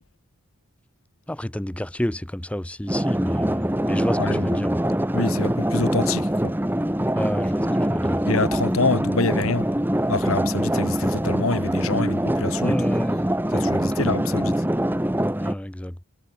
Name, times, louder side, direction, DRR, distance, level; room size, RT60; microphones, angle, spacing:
voice 1, 1.3-4.8 7.2-8.2 12.6-13.7 15.4-16.1, left 1 dB, 5° left, 0.6 m, -30 dB
sound 1, 2.9-15.5, right 1 dB, 10° right, 1.1 m, -23 dB
voice 2, 5.1-6.5 8.3-9.7 10.1-12.8 13.5-14.5, left 3 dB, 75° left, 1.4 m, -26 dB
head